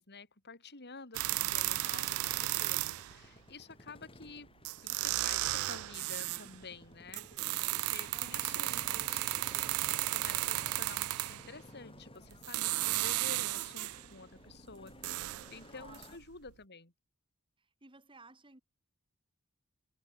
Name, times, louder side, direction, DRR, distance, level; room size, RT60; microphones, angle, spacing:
voice 1, 0.0-4.5 4.8-9.7 10.1-16.9, left 4 dB, 50° left, 4.3 m, -50 dB
sound 1, 1.1-3.2 4.3-4.4 4.6-6.5 7.1-11.5 12.3-14.1 14.5-16.1 16.5-16.6, right 19 dB, 75° right, 0.3 m, -34 dB
Motorcycle, 1.5-16.2, left 1 dB, 25° left, 6.9 m, -55 dB
voice 2, 1.6-2.1 8.1-8.7 15.8-16.2 17.6-18.6, right 3 dB, 25° right, 3.5 m, -58 dB
head